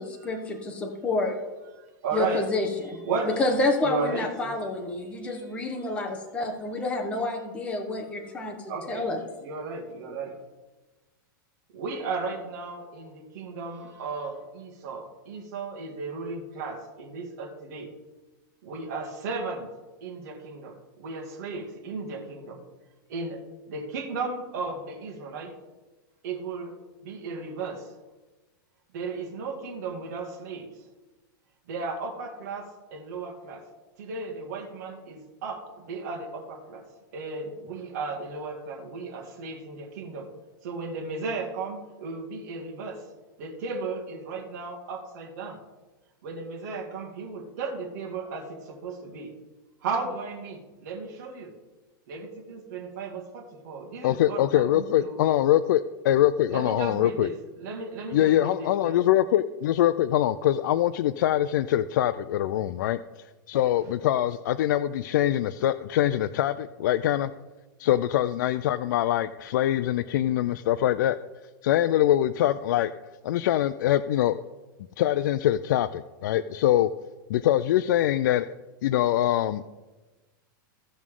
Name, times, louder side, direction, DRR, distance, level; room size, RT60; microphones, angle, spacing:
voice 1, 0.0-1.4 2.1-3.0 3.2-9.2, left 2 dB, 10° left, 1 dB, 1.1 m, -29 dB
voice 2, 1.8-2.5 3.0-3.4 3.8-4.5 5.2-5.3 8.6-9.1 9.4-10.4 11.7-17.9 18.6-19.7 20.0-22.6 23.1-25.5 26.2-26.7 27.0-27.9 28.9-30.8 31.7-33.7 34.0-36.9 37.1-40.3 40.6-43.1 43.4-45.6 46.2-49.3 49.8-51.5 52.1-55.2 56.5-57.3 57.6-59.0, right 4 dB, 50° right, 0 dB, 2.0 m, -35 dB
voice 3, 54.0-57.3 58.1-67.3 67.8-71.2 71.6-72.9 73.2-74.4 75.0-76.9 77.3-78.5 78.8-79.6, left 12 dB, 60° left, 12 dB, 0.4 m, -23 dB
16.0 x 6.1 x 3.8 m, 1.2 s
supercardioid pair, 165°, 11 cm